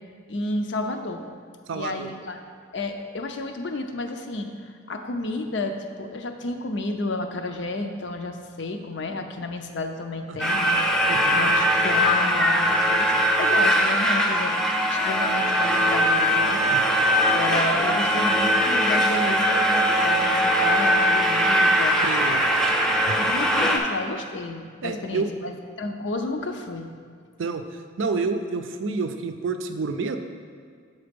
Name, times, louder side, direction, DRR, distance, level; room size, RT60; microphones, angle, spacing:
voice 1, 0.3-1.2 1.7-2.4 2.7-4.5 4.9-10.8 11.3-13.1 13.4-14.5 14.9-16.6 17.2-22.0 23.1-26.9, left 2 dB, 60° left, 5 dB, 0.5 m, -31 dB
voice 2, 1.7-2.1 10.3-10.4 11.1-11.5 16.7-16.9 22.0-22.4 23.1-23.2 24.8-25.3 27.4-30.2, right 4 dB, 70° right, 7 dB, 0.4 m, -29 dB
sound 1, 10.4-23.8, equal, 5° left, 0.3 m, -21 dB
6.7 x 4.1 x 5.1 m, 2.1 s
head